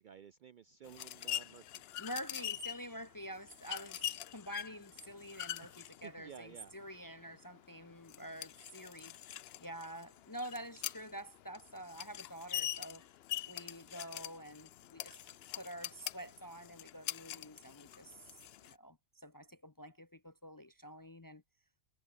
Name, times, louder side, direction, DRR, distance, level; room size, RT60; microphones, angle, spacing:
voice 1, 0.0-1.8 5.6-6.7, right 8 dB, 55° right, 0.5 m, -54 dB
sound 1, 0.9-18.7, left 12 dB, 65° left, 0.8 m, -44 dB
voice 2, 2.0-13.1 13.5-15.2 15.6-21.4, right 1 dB, 25° left, 0.5 m, -48 dB
omnidirectional pair, 1.2 m